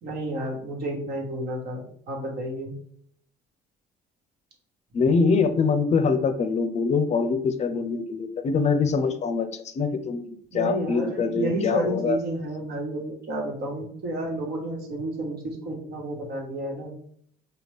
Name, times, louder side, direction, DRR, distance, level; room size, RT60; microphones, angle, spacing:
voice 1, 0.0-2.7 10.5-16.9, right 1 dB, 70° right, 0 dB, 1.3 m, -31 dB
voice 2, 4.9-9.5 9.7-12.2, left 4 dB, 40° left, 9 dB, 0.5 m, -24 dB
4.9 x 2.3 x 3.4 m, 0.63 s
cardioid pair, 110°, 17 cm